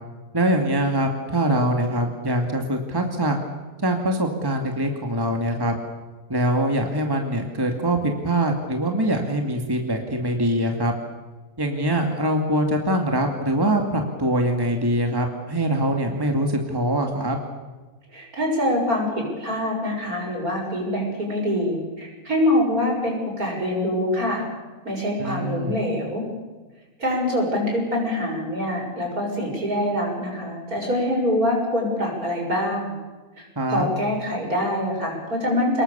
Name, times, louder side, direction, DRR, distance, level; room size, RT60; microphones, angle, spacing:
voice 1, 0.3-3.4 3.8-5.7 6.3-10.9 11.6-17.4 25.2-25.8 33.6-33.9, right 1 dB, 15° right, 3 dB, 2.4 m, -23 dB
voice 2, 18.1-24.4 24.8-26.2 27.0-32.9 33.4-35.8, left 1 dB, 70° right, 0 dB, 7.6 m, -24 dB
29.0 x 20.5 x 7.1 m, 1.2 s
omnidirectional pair, 1.6 m